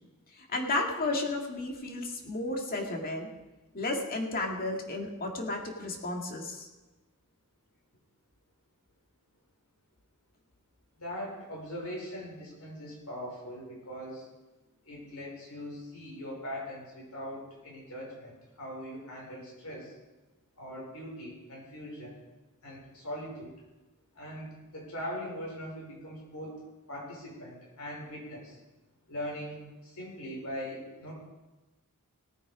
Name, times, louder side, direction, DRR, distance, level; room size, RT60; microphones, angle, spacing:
voice 1, 0.4-3.3 3.7-6.7, left 2 dB, 40° left, 1 dB, 2.2 m, -33 dB
voice 2, 11.0-14.2 14.9-19.9 20.6-22.2 22.6-23.5 24.1-26.5 26.9-28.6 29.1-31.1, equal, 85° left, -2 dB, 5.2 m, -41 dB
18.0 x 8.7 x 5.1 m, 1.1 s
head